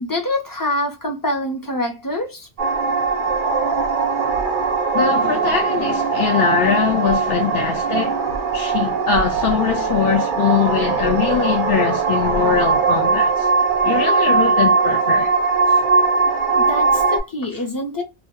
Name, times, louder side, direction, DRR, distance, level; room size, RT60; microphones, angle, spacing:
voice 1, 0.0-2.5 16.5-18.0, left 1 dB, 30° left, 0.4 m, -25 dB
sound 1, 2.6-17.2, right 4 dB, 60° right, 0.6 m, -20 dB
voice 2, 4.9-8.2 8.5-13.5 13.8-15.3 15.7-15.8, left 7 dB, 65° left, 0.7 m, -21 dB
2.1 x 2.1 x 2.8 m
omnidirectional pair, 1.1 m